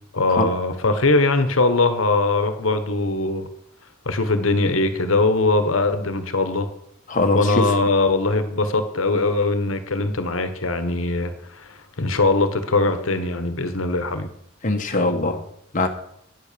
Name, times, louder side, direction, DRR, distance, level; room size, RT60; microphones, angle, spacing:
voice 1, 0.1-3.5 4.0-6.7 7.3-14.3, left 3 dB, 80° left, 10 dB, 1.3 m, -21 dB
voice 2, 7.1-7.6 14.6-15.4 15.7-15.9, left 2 dB, 40° left, 4 dB, 1.3 m, -21 dB
9.8 x 8.4 x 6.9 m, 0.70 s
head